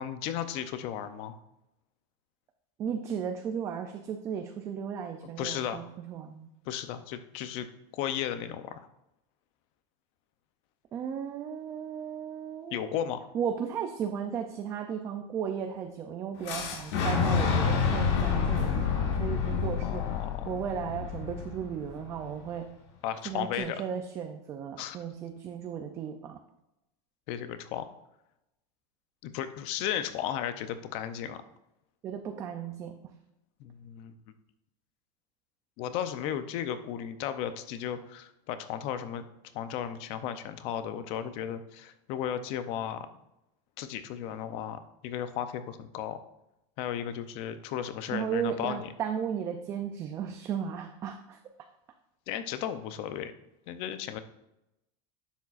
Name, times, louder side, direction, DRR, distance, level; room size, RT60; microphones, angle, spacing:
voice 1, 0.0-1.4 5.4-5.8 6.7-7.7 7.9-8.8 12.7-13.2 19.8-20.6 23.0-23.8 24.8-25.0 27.3-27.9 29.2-31.4 33.6-34.1 35.8-39.2 39.5-43.1 43.8-46.2 46.8-48.9 52.3-53.3 53.7-54.2, left 10 dB, 35° left, 11 dB, 0.5 m, -35 dB
voice 2, 2.8-6.5 10.9-13.1 13.3-20.0 20.5-22.7 23.2-26.4 32.0-32.9 48.1-51.4, right 8 dB, 20° right, 5 dB, 0.3 m, -35 dB
Fire / Explosion, 16.4-22.3, left 6 dB, 55° left, 1.5 m, -28 dB
10.0 x 7.2 x 2.4 m, 0.89 s
supercardioid pair, 180°, 16 cm